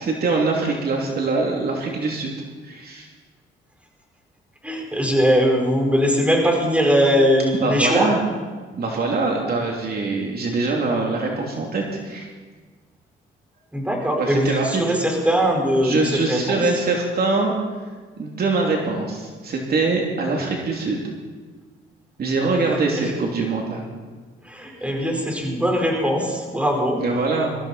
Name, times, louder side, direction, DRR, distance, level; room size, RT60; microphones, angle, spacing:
voice 1, 0.0-2.3 2.6-3.1 7.6-8.2 8.7-12.3 14.2-14.8 15.8-17.5 18.2-21.0 22.2-23.8 27.0-27.5, right 3 dB, 50° right, -1 dB, 3.0 m, -23 dB
voice 2, 4.6-8.1 13.7-16.6 23.0-23.1 24.4-27.0, equal, 5° right, 0 dB, 4.9 m, -20 dB
22.0 x 15.0 x 4.4 m, 1.4 s
cardioid pair, 90°, 20 cm